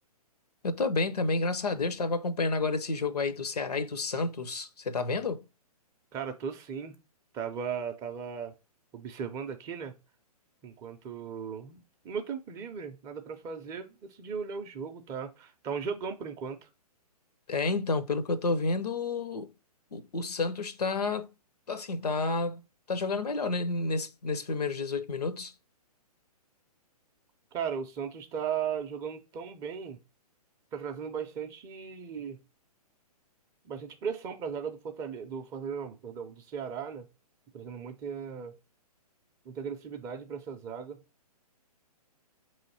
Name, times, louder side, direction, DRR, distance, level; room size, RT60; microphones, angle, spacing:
voice 1, 0.6-5.4 17.5-19.5 19.9-21.3 21.7-22.6 22.9-25.5, left 3 dB, 80° left, 0.6 m, -30 dB
voice 2, 6.1-6.9 7.3-8.5 8.9-9.9 10.6-16.7 27.5-30.0 30.7-32.4 33.6-37.1 37.5-38.5 39.5-41.0, right 7 dB, 15° right, 0.4 m, -37 dB
5.1 x 3.1 x 2.7 m
figure-of-eight pair, 125°, 20 cm